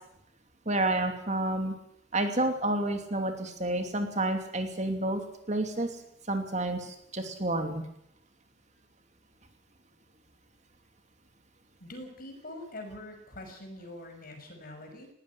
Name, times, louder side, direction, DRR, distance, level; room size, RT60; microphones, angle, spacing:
voice 1, 0.7-1.7 2.1-5.2 5.5-5.9 6.3-7.8, right 1 dB, 35° right, 5 dB, 2.8 m, -29 dB
voice 2, 11.8-15.1, left 1 dB, 45° left, 5 dB, 6.1 m, -44 dB
20.0 x 18.5 x 9.9 m, 0.76 s
head